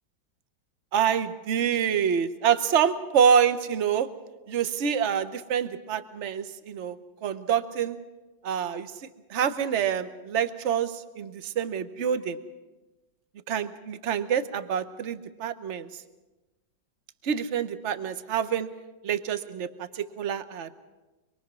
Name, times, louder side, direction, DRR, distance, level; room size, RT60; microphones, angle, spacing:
voice 1, 0.9-4.1 4.5-7.0 7.2-8.0 8.4-8.9 9.3-12.4 13.5-15.9 17.2-18.7 19.0-20.7, right 8 dB, 45° right, 11 dB, 1.1 m, -26 dB
25.0 x 22.0 x 6.2 m, 1.1 s
omnidirectional pair, 2.1 m